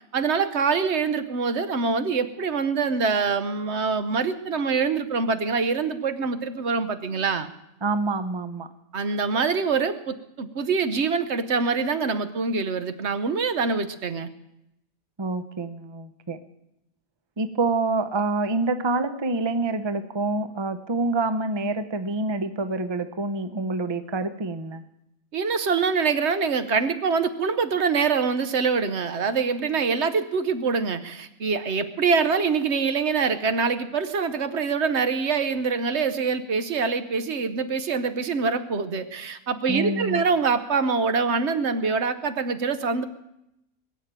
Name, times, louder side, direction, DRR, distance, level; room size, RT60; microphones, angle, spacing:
voice 1, 0.0-7.5 8.9-14.3 25.3-43.0, right 5 dB, 55° right, 11 dB, 1.1 m, -25 dB
voice 2, 7.8-8.7 15.2-16.4 17.4-24.8 39.7-40.3, right 3 dB, 30° right, 11 dB, 0.5 m, -27 dB
20.5 x 7.4 x 8.9 m, 0.84 s
omnidirectional pair, 1.5 m